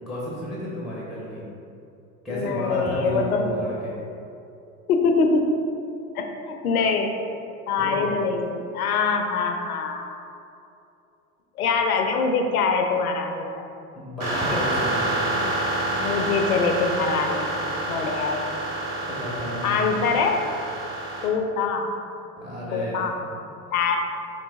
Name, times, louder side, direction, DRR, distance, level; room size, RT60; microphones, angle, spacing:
voice 1, 0.0-1.4 2.2-3.9 7.8-8.1 13.9-15.1 19.1-20.1 22.4-23.4, equal, ahead, -6 dB, 0.9 m, -32 dB
voice 2, 2.3-3.6 4.9-5.5 6.1-7.1 7.7-10.1 11.6-13.5 14.5-14.6 15.3-15.5 16.0-17.5 17.9-18.4 19.6-20.4 21.2-21.9 22.7-23.1 23.7-24.0, left 4 dB, 80° left, 4 dB, 0.5 m, -24 dB
sound 1, 14.2-21.3, right 2 dB, 90° right, 0.8 m, -28 dB
4.6 x 3.7 x 2.4 m, 2.7 s
figure-of-eight pair, 70°, 43 cm